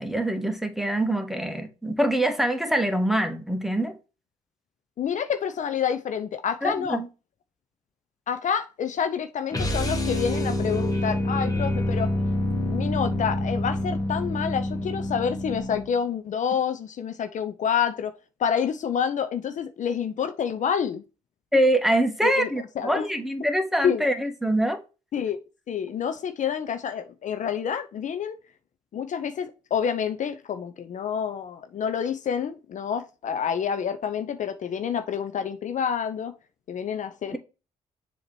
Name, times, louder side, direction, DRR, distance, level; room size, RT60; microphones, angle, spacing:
voice 1, 0.0-3.9 6.6-7.1 21.5-24.8, right 1 dB, ahead, 1.1 m, -24 dB
voice 2, 5.0-7.0 8.3-12.1 12.7-18.1 18.4-21.0 22.2-22.5 22.8-23.1 23.8-24.0 25.1-25.4 25.7-28.4 28.9-36.3 36.7-37.4, left 7 dB, 50° left, 0.6 m, -28 dB
sound 1, 9.5-16.0, left 1 dB, 20° left, 1.6 m, -27 dB
7.1 x 2.9 x 4.6 m
hypercardioid pair, 45°, 17 cm